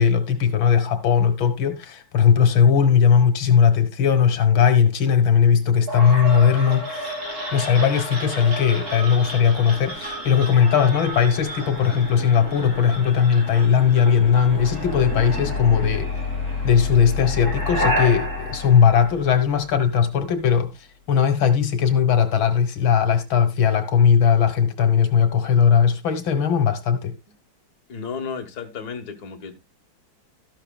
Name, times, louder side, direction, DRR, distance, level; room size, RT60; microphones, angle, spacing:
voice 1, 0.0-7.1 7.5-16.1 16.6-27.1, left 7 dB, 75° left, 2.1 m, -18 dB
sound 1, 5.9-19.7, left 1 dB, 45° right, 5.3 m, -30 dB
voice 2, 27.9-29.6, left 6 dB, 50° left, 1.9 m, -33 dB
13.0 x 11.5 x 2.3 m
omnidirectional pair, 2.2 m